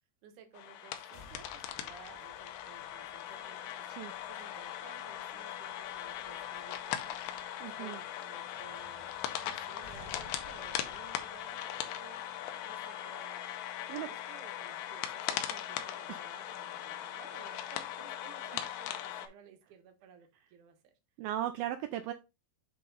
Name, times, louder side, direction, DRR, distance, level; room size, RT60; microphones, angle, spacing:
voice 1, 0.2-13.5 14.0-20.9, right 8 dB, 65° right, 2.1 m, -56 dB
sound 1, 0.5-19.3, left 11 dB, 80° left, 2.5 m, -40 dB
sound 2, 1.1-13.1, left 2 dB, 45° left, 2.4 m, -59 dB
voice 2, 7.6-8.0 13.9-14.1 16.1-16.2 18.5-18.6 21.2-22.1, right 12 dB, 85° right, 2.1 m, -37 dB
7.6 x 3.7 x 3.9 m
omnidirectional pair, 4.8 m